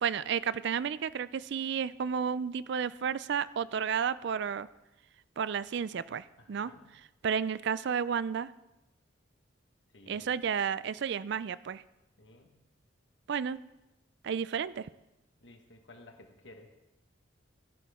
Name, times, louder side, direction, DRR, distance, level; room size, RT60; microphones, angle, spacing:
voice 1, 0.0-4.7 5.4-6.7 7.2-8.5 10.1-11.8 13.3-13.6 14.2-14.9, right 7 dB, 60° right, 17 dB, 0.4 m, -32 dB
voice 2, 6.4-6.9 9.9-10.3 12.2-12.6 15.4-16.7, left 2 dB, 65° left, 4 dB, 1.5 m, -54 dB
16.5 x 11.0 x 3.6 m, 0.96 s
head